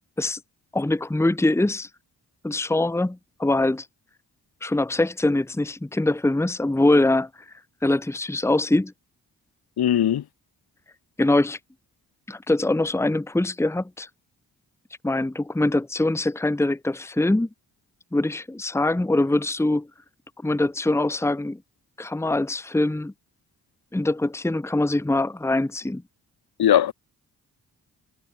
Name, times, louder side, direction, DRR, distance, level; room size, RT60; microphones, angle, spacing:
voice 1, 0.7-1.9 2.4-3.9 4.6-7.3 7.8-8.9 11.2-11.6 12.3-14.1 15.0-17.5 18.1-19.9 20.4-21.6 22.0-23.1 23.9-26.0, left 2 dB, 5° left, 1.1 m, -23 dB
voice 2, 9.8-10.2 26.6-26.9, left 10 dB, 80° left, 3.2 m, -19 dB
cardioid pair, 60°, 37 cm